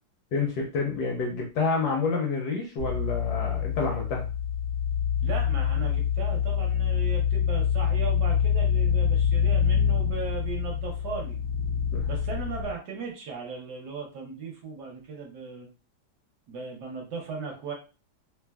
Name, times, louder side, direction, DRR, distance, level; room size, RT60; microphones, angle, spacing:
voice 1, 0.3-4.2 11.9-12.1, left 4 dB, 70° left, 0 dB, 1.0 m, -28 dB
sound 1, 2.8-12.7, left 8 dB, 85° right, 0.7 m, -26 dB
voice 2, 5.2-11.4 12.1-15.7 16.5-17.7, right 5 dB, 65° right, 0 dB, 1.2 m, -37 dB
3.3 x 2.1 x 2.2 m, 0.33 s
omnidirectional pair, 2.1 m